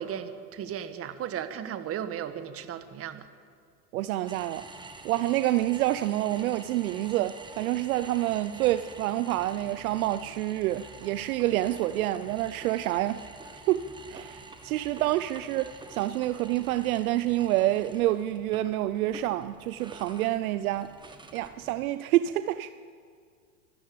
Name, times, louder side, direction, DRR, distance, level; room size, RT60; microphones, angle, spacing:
voice 1, 0.0-3.3, right 9 dB, 25° right, 1.6 m, -35 dB
voice 2, 3.9-4.7 5.0-20.9 21.3-22.7, right 15 dB, 55° right, 0.8 m, -28 dB
sound 1, 4.3-22.0, right 3 dB, 10° right, 1.4 m, -47 dB
25.5 x 13.5 x 8.7 m
hypercardioid pair, 120°, 50 cm